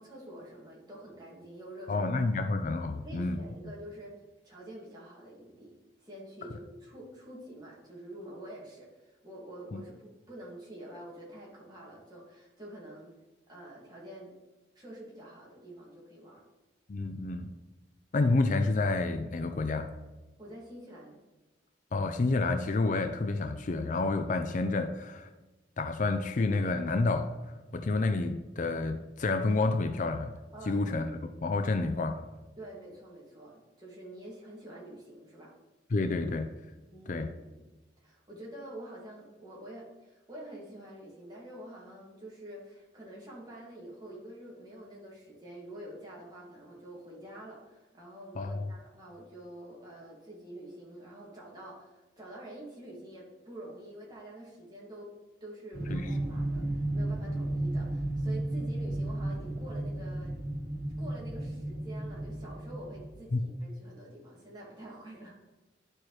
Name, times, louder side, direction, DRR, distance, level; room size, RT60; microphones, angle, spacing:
voice 1, 0.0-2.1 2.3-2.5 3.0-4.1 4.4-13.1 13.5-14.3 14.8-16.4 20.4-21.2 30.5-30.8 32.6-35.5 36.9-37.6 38.0-55.1 55.4-60.3 61.0-65.5, right 1 dB, 25° right, -5 dB, 2.1 m, -47 dB
voice 2, 1.9-3.4 9.7-9.8 16.9-17.5 18.1-19.9 21.9-25.3 25.8-27.3 27.7-30.4 30.7-32.2 35.9-36.5 37.1-37.3 48.4-48.7 55.9-56.1 63.3-63.4, left 3 dB, 45° left, 7 dB, 0.4 m, -29 dB
sound 1, 55.7-63.1, right 1 dB, 55° right, 2.5 m, -34 dB
11.5 x 4.5 x 3.2 m, 1.1 s
head